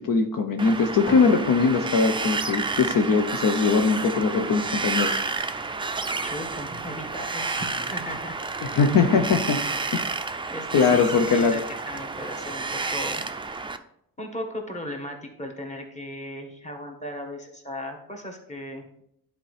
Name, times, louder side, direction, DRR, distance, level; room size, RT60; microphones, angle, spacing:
voice 1, 0.1-5.2 8.7-9.6 9.9-10.0 10.7-11.6, left 4 dB, 65° left, 5 dB, 0.7 m, -21 dB
Wind, 0.6-13.8, right 4 dB, 15° right, 0.4 m, -30 dB
Drum, 1.1-3.0, left 2 dB, 45° left, 2.3 m, -40 dB
voice 2, 6.2-8.3 10.5-13.2 14.2-19.0, left 1 dB, 20° left, 2 dB, 1.5 m, -37 dB
10.5 x 4.3 x 3.3 m, 0.75 s
cardioid pair, 90°, 36 cm